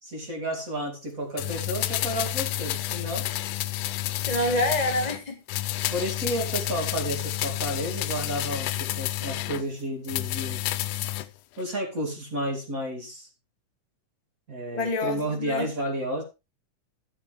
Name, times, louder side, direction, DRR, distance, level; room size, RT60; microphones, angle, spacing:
voice 1, 0.0-3.3 5.9-10.6 11.6-13.3 14.5-16.2, right 1 dB, 30° right, 1 dB, 2.6 m, -31 dB
sound 1, 1.4-5.2 5.5-9.6 10.0-11.3 11.6-11.7, left 15 dB, 80° left, 2.1 m, -30 dB
voice 2, 4.3-5.4 14.7-15.7, left 1 dB, 60° left, 3 dB, 0.4 m, -27 dB
13.0 x 7.7 x 3.4 m, 0.26 s
omnidirectional pair, 3.7 m